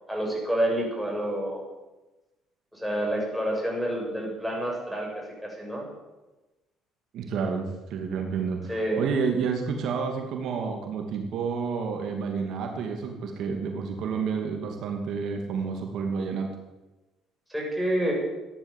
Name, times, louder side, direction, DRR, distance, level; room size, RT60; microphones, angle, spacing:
voice 1, 0.1-1.6 2.7-5.9 8.7-9.0 17.5-18.1, right 1 dB, ahead, -2 dB, 7.3 m, -28 dB
voice 2, 7.1-16.5, right 5 dB, 65° right, 3 dB, 2.4 m, -30 dB
15.0 x 10.5 x 7.4 m, 1.1 s
supercardioid pair, 90°, 0 cm